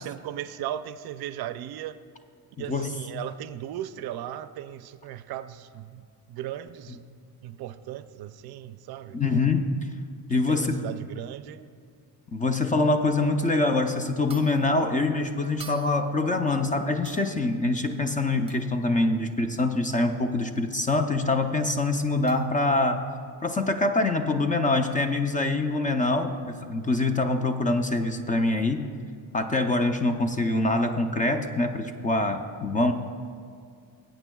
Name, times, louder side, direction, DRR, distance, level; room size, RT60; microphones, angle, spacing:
voice 1, 0.0-2.0 2.6-7.0 7.4-9.4 10.5-11.7, right 11 dB, 65° right, 13 dB, 0.5 m, -37 dB
voice 2, 9.1-9.9 10.3-10.9 12.3-23.0 23.4-28.9 29.3-32.9, left 2 dB, 20° left, 6 dB, 0.4 m, -25 dB
sound 1, 14.3-14.8 15.6-16.2 17.0-17.5 18.5-18.7 20.8-21.0 22.3-22.5, right 5 dB, 15° right, 0.7 m, -47 dB
20.5 x 8.9 x 2.3 m, 2.3 s
cardioid pair, 145°, 40 cm